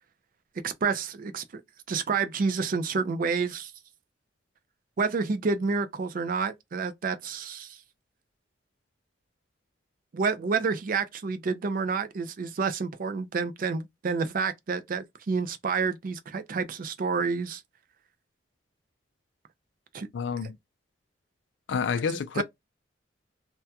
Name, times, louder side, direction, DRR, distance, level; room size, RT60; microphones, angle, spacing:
voice 1, 0.6-1.6 1.9-3.7 5.0-7.8 10.1-17.6 19.9-20.1 22.4-22.5, right 5 dB, 50° right, 0.4 m, -29 dB
voice 2, 20.1-20.6 21.7-22.4, left 6 dB, 70° left, 0.3 m, -29 dB
2.2 x 2.1 x 2.7 m
head